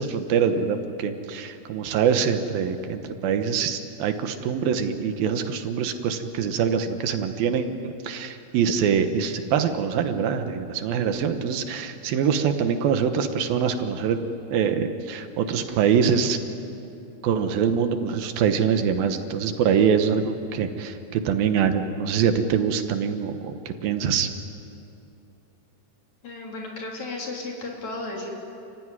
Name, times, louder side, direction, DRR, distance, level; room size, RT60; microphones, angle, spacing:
voice 1, 0.0-14.2 14.5-16.4 17.2-24.3, right 7 dB, 80° right, 7 dB, 3.1 m, -24 dB
voice 2, 26.2-28.3, left 2 dB, 50° left, -1 dB, 4.6 m, -34 dB
29.0 x 15.5 x 9.8 m, 2.8 s
omnidirectional pair, 4.1 m